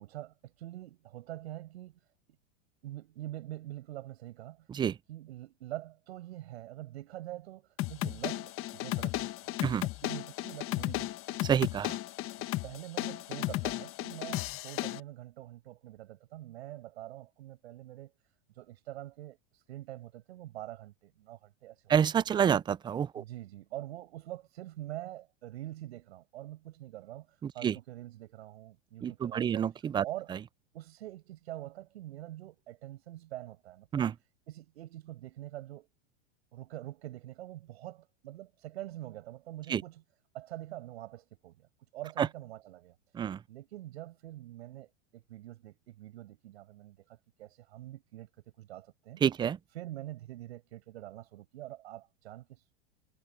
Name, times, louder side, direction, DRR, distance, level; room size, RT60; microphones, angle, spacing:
voice 1, 0.0-2.0 2.8-4.7 5.1-11.4 12.4-18.1 18.5-21.9 23.1-29.7 30.0-30.3 30.7-34.1 34.5-35.9 36.5-40.0 40.3-41.7 41.9-42.9 43.5-49.2 49.7-52.6, right 14 dB, 75° right, 7.6 m, -45 dB
sound 1, 7.8-15.0, left 17 dB, 40° left, 1.4 m, -35 dB
voice 2, 11.4-12.0 21.9-23.2 27.4-27.8 29.0-30.0 30.3-30.4 33.9-34.1 39.7-39.8 42.2-42.3 43.1-43.4 49.2-49.6, right 8 dB, 15° right, 0.4 m, -28 dB
hypercardioid pair, 115°, 32 cm